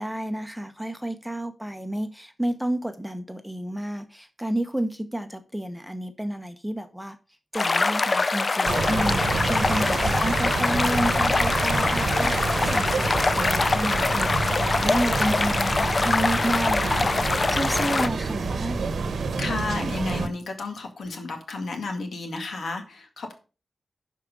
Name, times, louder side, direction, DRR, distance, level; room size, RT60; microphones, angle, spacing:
voice 1, 0.0-7.2 7.5-18.8, right 1 dB, ahead, 8 dB, 1.0 m, -31 dB
sound 1, 7.5-18.1, left 3 dB, 40° left, 0.4 m, -24 dB
sound 2, 8.6-20.3, right 4 dB, 85° right, 1.0 m, -28 dB
voice 2, 19.4-23.4, left 3 dB, 75° left, 5 dB, 2.1 m, -32 dB
11.5 x 4.6 x 5.3 m, 0.34 s
wide cardioid pair, 115°, 0 cm